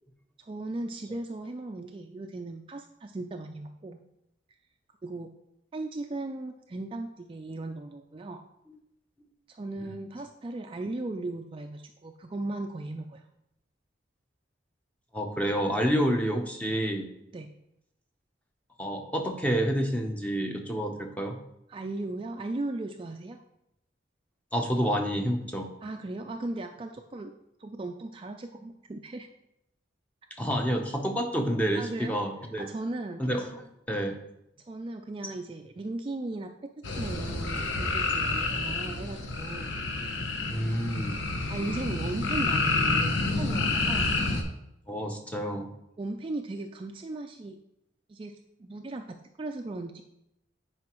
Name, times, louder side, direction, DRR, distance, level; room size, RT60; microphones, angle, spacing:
voice 1, 0.4-4.0 5.0-5.3 5.7-8.4 9.5-13.2 17.3-17.5 21.7-23.4 25.8-27.3 27.6-29.3 31.7-32.2 32.6-33.2 34.7-39.8 41.5-44.1 46.0-47.6 48.1-49.0 49.4-50.0, right 2 dB, 30° right, 5 dB, 0.3 m, -37 dB
voice 2, 15.1-17.1 18.8-21.4 24.5-25.7 30.4-32.7 33.2-34.2 40.5-41.2 44.9-45.7, equal, 10° left, 3 dB, 0.7 m, -29 dB
sound 1, 36.8-44.4, left 3 dB, 80° left, 0.9 m, -29 dB
9.4 x 4.8 x 3.0 m, 0.84 s
head